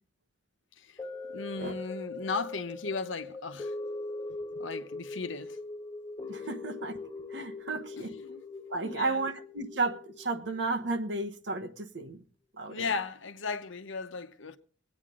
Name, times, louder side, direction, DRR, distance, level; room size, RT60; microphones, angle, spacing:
sound 1, 1.0-11.3 11.8-11.9, left 3 dB, 20° left, 1.7 m, -41 dB
voice 1, 1.3-3.7 4.6-5.6 7.9-8.4 8.8-9.3 12.7-14.6, left 4 dB, 80° left, 1.0 m, -36 dB
voice 2, 6.3-7.0 7.3-8.1 8.7-12.2 12.6-12.8, right 3 dB, 65° right, 1.1 m, -33 dB
23.5 x 9.0 x 3.8 m
head